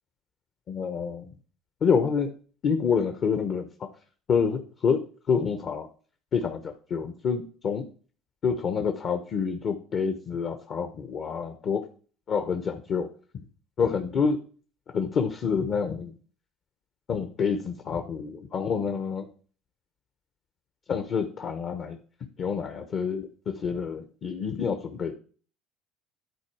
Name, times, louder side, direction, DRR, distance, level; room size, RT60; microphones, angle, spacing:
voice 1, 0.7-1.3 1.8-2.3 2.6-3.9 4.3-5.0 5.3-5.9 6.3-7.8 8.4-11.8 12.3-13.1 13.8-14.4 14.9-16.1 17.1-19.3 20.9-22.0 22.4-25.1, left 6 dB, 50° left, 6 dB, 0.9 m, -27 dB
10.5 x 4.1 x 4.7 m, 0.41 s
supercardioid pair, 85°, 0 cm